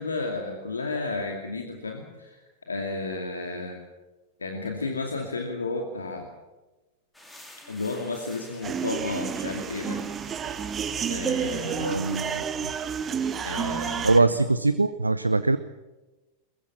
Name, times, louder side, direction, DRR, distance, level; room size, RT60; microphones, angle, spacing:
voice 1, 0.0-3.8 4.4-6.3 7.7-10.0 11.1-12.0 13.4-14.1, left 3 dB, 75° left, 3 dB, 2.4 m, -32 dB
sound 1, 7.1-12.4, left 1 dB, 5° left, 4.4 m, -50 dB
sound 2, 8.6-14.2, right 7 dB, 25° right, 1.2 m, -30 dB
voice 2, 11.8-12.4 14.0-15.6, right 3 dB, 80° right, 13 dB, 0.7 m, -22 dB
22.0 x 21.5 x 7.3 m, 1.1 s
figure-of-eight pair, 90°, 0 cm